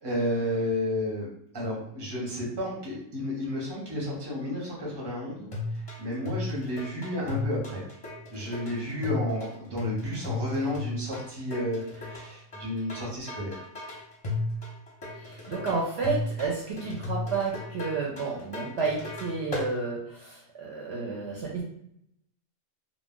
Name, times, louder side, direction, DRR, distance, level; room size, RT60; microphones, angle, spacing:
voice 1, 0.0-5.5 6.0-7.8 8.3-13.6, left 1 dB, 25° right, -3 dB, 0.7 m, -32 dB
sound 1, 5.5-19.7, left 2 dB, 35° left, 0.6 m, -35 dB
voice 2, 15.1-21.6, right 4 dB, 65° right, -3 dB, 0.8 m, -31 dB
2.3 x 2.1 x 3.6 m, 0.72 s
omnidirectional pair, 1.3 m